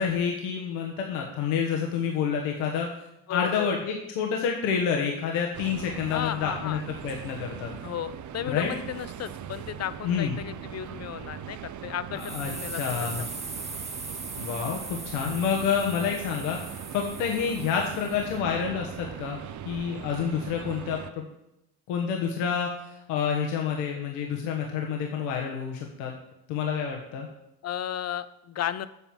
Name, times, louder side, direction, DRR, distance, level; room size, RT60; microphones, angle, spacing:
voice 1, 0.0-2.9 3.3-7.7 8.5-8.7 10.0-10.4 12.1-12.5 12.8-13.2 14.4-19.4 19.6-21.3 21.9-26.1 26.5-27.3, left 7 dB, 85° left, 0 dB, 1.4 m, -28 dB
voice 2, 3.3-3.8 6.1-6.8 7.8-13.1 27.6-28.9, left 10 dB, 35° left, 15 dB, 0.6 m, -34 dB
sound 1, 5.5-21.1, right 9 dB, 40° right, 0.6 m, -40 dB
sound 2, 12.2-18.4, right 3 dB, 15° right, 1.1 m, -40 dB
8.2 x 5.9 x 7.3 m, 0.85 s
supercardioid pair, 100°, 46 cm